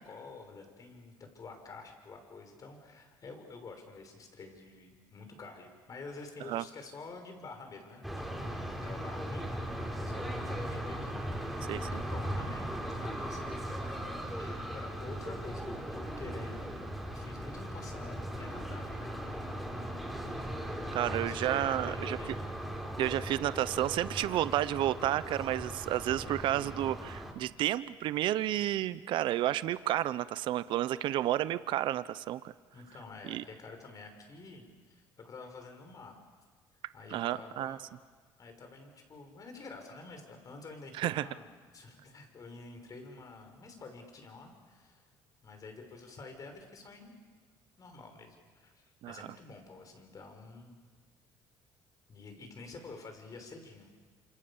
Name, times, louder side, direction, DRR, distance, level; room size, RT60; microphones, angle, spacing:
voice 1, 0.0-8.0 8.3-9.7 10.0-11.5 11.9-13.6 14.4-16.8 17.1-19.2 20.9-22.4 32.7-36.2 36.9-37.8 38.4-41.5 41.7-45.0 45.4-47.1 47.8-50.7 52.1-53.9, left 3 dB, 45° left, 5 dB, 6.1 m, -49 dB
sound 1, 8.0-27.3, equal, ahead, 5.6 m, -38 dB
voice 2, 11.6-12.0 20.9-22.2 23.0-32.5 33.2-33.4 37.1-37.8 41.0-41.2 49.0-49.3, right 13 dB, 70° right, 15 dB, 0.8 m, -31 dB
28.0 x 26.5 x 7.3 m, 1.5 s
cardioid pair, 90°, 9 cm